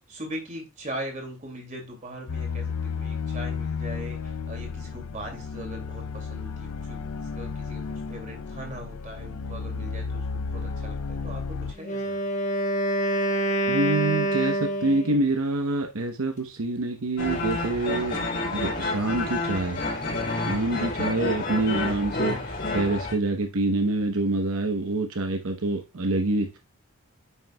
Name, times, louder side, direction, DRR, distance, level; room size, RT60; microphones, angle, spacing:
voice 1, 0.1-12.2, right 1 dB, 35° right, 2.4 m, -40 dB
sound 1, 2.3-11.7, left 5 dB, 80° left, 0.5 m, -33 dB
Wind instrument woodwind instrument, 11.8-15.3, right 1 dB, 35° left, 1.1 m, -26 dB
voice 2, 13.7-18.2 18.5-19.8 20.3-26.6, right 2 dB, 75° right, 0.9 m, -26 dB
sound 2, 17.2-23.1, left 2 dB, 50° left, 3.3 m, -29 dB
9.3 x 6.2 x 2.3 m
head